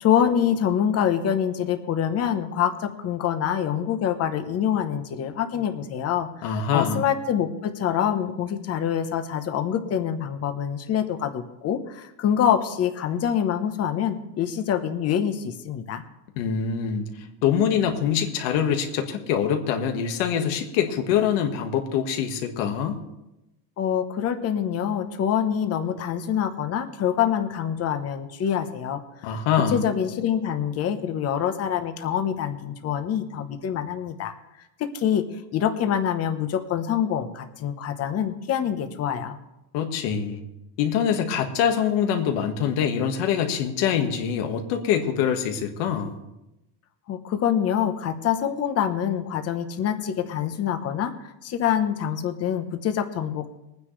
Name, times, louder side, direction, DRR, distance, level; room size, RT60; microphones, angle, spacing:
voice 1, 0.0-16.0 23.8-29.0 29.3-29.4 29.7-34.3 34.8-35.2 35.5-39.4 47.1-53.5, left 9 dB, 35° left, 8 dB, 1.0 m, -25 dB
voice 2, 6.4-7.0 16.4-17.1 17.4-23.0 29.2-29.9 39.7-40.4 40.8-46.2, left 8 dB, 90° left, 4 dB, 1.8 m, -24 dB
22.0 x 9.6 x 3.3 m, 0.95 s
cardioid pair, 170°, 45 cm